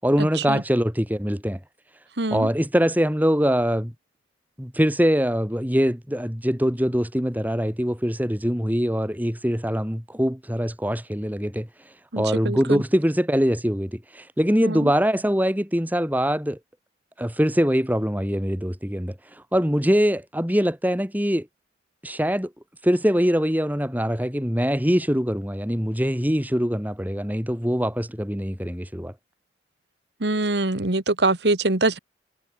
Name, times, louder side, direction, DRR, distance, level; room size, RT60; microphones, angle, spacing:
voice 1, 0.0-1.6 2.3-3.9 4.6-11.7 12.2-16.6 17.2-21.5 22.0-22.5 22.8-29.1, equal, 10° right, 6.4 m, -23 dB
voice 2, 2.2-2.5 12.1-12.8 14.6-14.9 30.2-32.0, right 2 dB, 75° right, 2.0 m, -24 dB
head